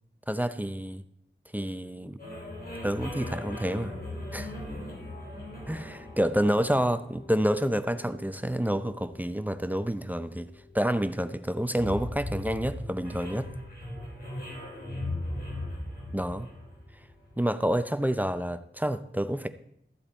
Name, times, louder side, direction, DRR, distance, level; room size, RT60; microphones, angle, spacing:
voice 1, 0.3-1.0 1.5-2.2 2.8-3.9 4.3-4.5 5.7-13.5 16.1-16.5 17.4-19.5, equal, 10° right, 11 dB, 0.6 m, -28 dB
sound 1, 2.2-17.6, left 1 dB, 50° left, 4.0 m, -39 dB
13.5 x 7.9 x 4.3 m, 0.75 s
wide cardioid pair, 65°, 20 cm